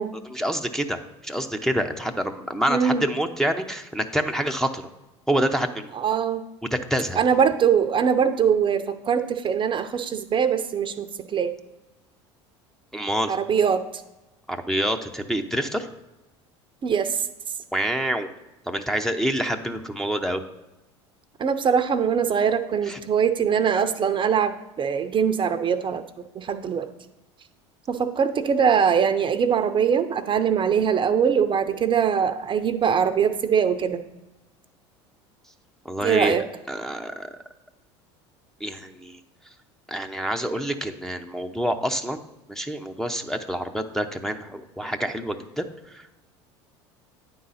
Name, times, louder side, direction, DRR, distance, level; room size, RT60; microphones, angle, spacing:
voice 1, 0.2-4.8 5.3-5.9 6.7-7.2 12.9-13.4 14.5-15.9 17.7-18.3 18.7-20.4 22.9-23.0 35.8-36.4 36.7-37.4 38.6-39.2 39.9-42.2 42.5-46.1, right 1 dB, 5° left, 3 dB, 0.7 m, -27 dB
voice 2, 2.7-3.0 6.0-6.4 7.2-11.5 13.3-13.8 16.8-17.3 21.4-26.0 26.3-26.9 27.9-34.0 36.0-36.4, right 7 dB, 35° right, 9 dB, 0.6 m, -22 dB
9.5 x 3.8 x 5.6 m, 0.99 s
hypercardioid pair, 75°, 15 cm